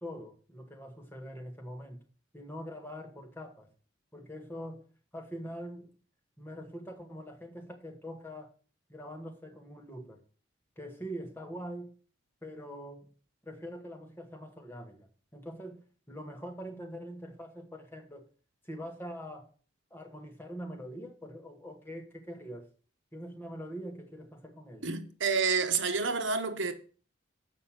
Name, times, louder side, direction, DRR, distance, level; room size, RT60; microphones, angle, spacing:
voice 1, 0.0-2.0 2.3-3.7 4.1-4.9 5.1-5.9 6.4-8.5 8.9-10.2 10.8-11.9 12.4-13.1 13.4-15.8 16.1-18.3 18.6-19.5 19.9-22.7 23.1-24.9, equal, 10° left, 1.4 m, -43 dB
voice 2, 24.8-26.7, right 5 dB, 80° right, 1.1 m, -29 dB
7.4 x 5.3 x 7.2 m
head